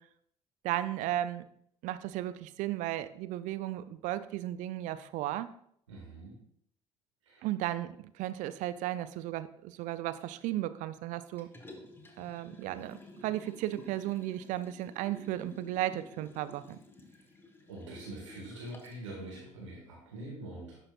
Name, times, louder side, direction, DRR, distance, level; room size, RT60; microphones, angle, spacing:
voice 1, 0.6-1.4 1.8-5.5 7.4-11.5 12.2-16.8, right 14 dB, 50° right, 13 dB, 0.4 m, -35 dB
voice 2, 5.9-6.4 7.2-7.4 17.1-17.2 17.7-20.8, right 1 dB, 75° right, -4 dB, 1.9 m, -44 dB
Liquid, 11.4-19.0 19.5-19.6, left 2 dB, 15° left, 1.2 m, -52 dB
11.5 x 5.7 x 2.4 m, 0.68 s
figure-of-eight pair, 55°, 16 cm